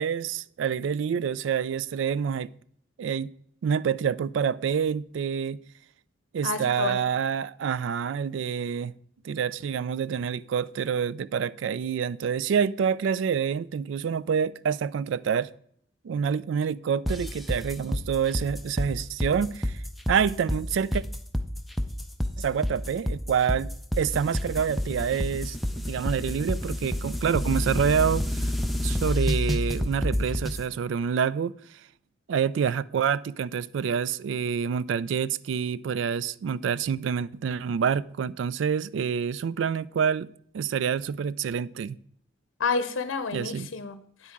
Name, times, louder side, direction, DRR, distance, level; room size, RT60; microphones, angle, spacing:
voice 1, 0.0-2.5 3.0-3.3 3.6-5.6 6.3-8.9 9.2-15.5 16.0-19.8 20.1-21.0 22.4-23.7 24.0-28.5 28.8-31.5 32.3-42.0 43.3-43.7, right 7 dB, 75° right, 0.3 m, -27 dB
voice 2, 6.4-7.0 42.6-44.3, left 4 dB, 90° left, 0.7 m, -30 dB
sound 1, 17.1-30.6, left 1 dB, ahead, 0.5 m, -29 dB
9.3 x 8.4 x 3.6 m
head